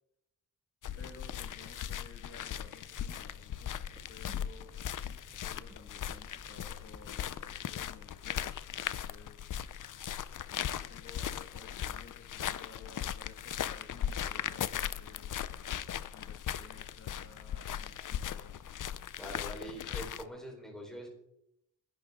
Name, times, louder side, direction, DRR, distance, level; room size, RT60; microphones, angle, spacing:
sound 1, 0.8-20.2, left 10 dB, 80° left, 0.7 m, -38 dB
sound 2, 0.8-7.1, right 2 dB, 20° right, 1.9 m, -58 dB
voice 1, 1.0-4.8 5.3-9.5 10.5-15.4 16.1-18.8, left 5 dB, 50° left, 2 dB, 1.9 m, -55 dB
voice 2, 19.2-21.1, equal, ahead, -1 dB, 4.2 m, -44 dB
29.0 x 11.5 x 3.7 m, 0.82 s
wide cardioid pair, 180°, 31 cm